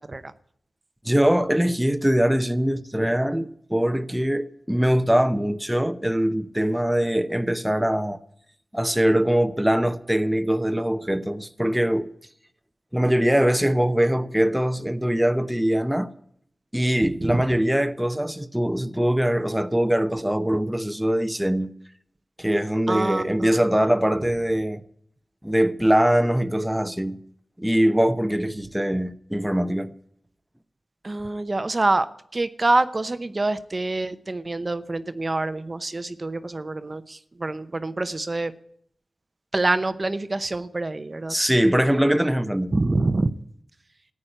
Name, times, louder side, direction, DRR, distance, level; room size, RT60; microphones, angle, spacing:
voice 1, 1.0-8.2 8.7-12.1 12.9-16.1 16.7-21.7 22.4-24.8 25.4-27.2 27.6-29.9 41.3-42.7, equal, 5° right, 0.9 m, -22 dB
voice 2, 22.9-23.7 31.0-32.1 32.3-38.5 39.5-41.3 42.7-43.3, right 2 dB, 35° right, 0.8 m, -26 dB
14.5 x 9.6 x 8.7 m
wide cardioid pair, 95°, 0 cm